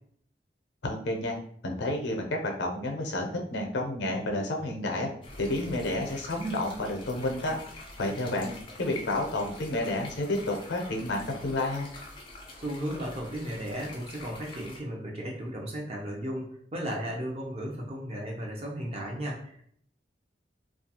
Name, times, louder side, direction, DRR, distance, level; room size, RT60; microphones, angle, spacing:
voice 1, 0.8-1.4 1.6-5.1 5.4-7.6 8.0-8.5 8.8-11.9, left 1 dB, 85° left, 2 dB, 0.5 m, -30 dB
sound 1, 5.2-14.8, left 2 dB, 25° left, 0.4 m, -46 dB
voice 2, 12.6-19.6, equal, 35° right, -2 dB, 0.6 m, -35 dB
2.3 x 2.3 x 2.8 m, 0.63 s
head